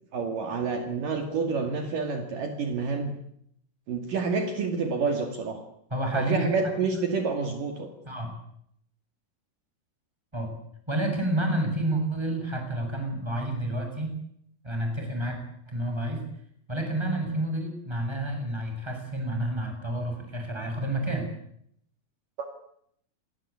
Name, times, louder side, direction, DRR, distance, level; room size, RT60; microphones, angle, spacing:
voice 1, 0.1-3.1 3.9-5.6 6.1-7.9, right 4 dB, 60° right, 5 dB, 3.8 m, -28 dB
voice 2, 5.9-6.8 8.0-8.3 10.3-10.5 10.9-14.1 14.6-15.4 15.7-16.3 16.7-21.3, right 1 dB, 5° right, 3 dB, 7.1 m, -29 dB
29.0 x 21.5 x 8.5 m, 0.71 s
omnidirectional pair, 4.5 m